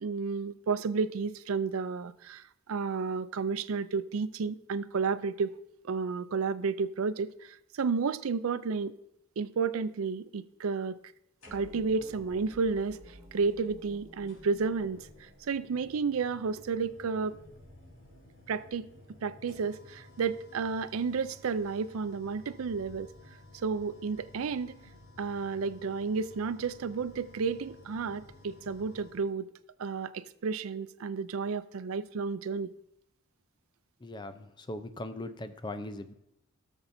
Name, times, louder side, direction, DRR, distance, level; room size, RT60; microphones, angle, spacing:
voice 1, 0.0-5.5 5.8-8.9 9.4-11.0 11.5-17.4 18.5-18.9 19.2-23.1 23.6-24.8 25.2-29.5 29.8-32.7, right 5 dB, 80° right, 0.4 m, -32 dB
sound 1, 11.4-12.0 13.4-13.5 14.3-29.3, left 2 dB, 70° left, 3.8 m, -54 dB
sound 2, 11.5-18.4, equal, 10° right, 2.5 m, -54 dB
voice 2, 34.0-36.1, left 1 dB, 20° left, 0.5 m, -40 dB
17.0 x 7.0 x 2.7 m
head